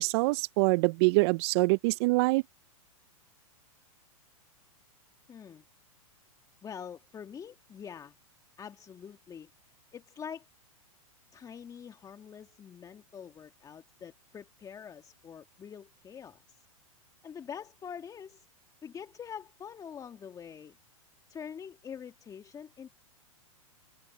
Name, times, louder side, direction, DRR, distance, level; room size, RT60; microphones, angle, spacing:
voice 1, 0.0-2.4, right 26 dB, 45° right, 0.8 m, -25 dB
voice 2, 5.3-5.6 6.6-8.2 8.6-9.5 9.9-10.5 11.3-16.6 17.2-18.5 18.8-20.7 21.3-22.9, left 7 dB, 20° left, 2.0 m, -45 dB
open air
hypercardioid pair, 110°, 18 cm